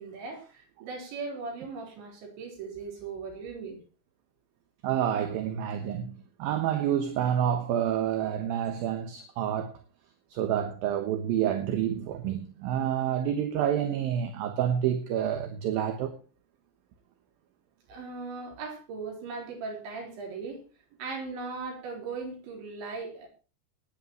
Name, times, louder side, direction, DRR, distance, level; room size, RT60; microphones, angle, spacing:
voice 1, 0.0-3.8 17.9-20.6 21.0-23.3, right 4 dB, 80° right, 6.5 m, -38 dB
voice 2, 4.8-9.7 10.3-16.2, right 10 dB, 65° right, 2.7 m, -28 dB
21.0 x 10.5 x 3.0 m
omnidirectional pair, 5.1 m